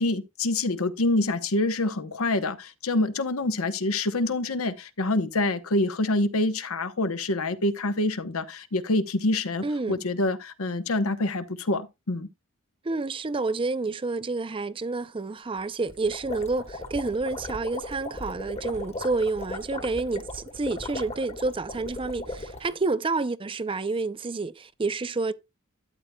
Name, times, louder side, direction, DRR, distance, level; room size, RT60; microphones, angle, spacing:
voice 1, 0.0-12.3, left 2 dB, 70° left, 1.0 m, -26 dB
voice 2, 9.6-10.0 12.8-25.3, right 3 dB, 25° right, 0.5 m, -29 dB
sound 1, 15.9-22.7, left 2 dB, 30° left, 1.4 m, -37 dB
13.0 x 8.5 x 2.3 m
head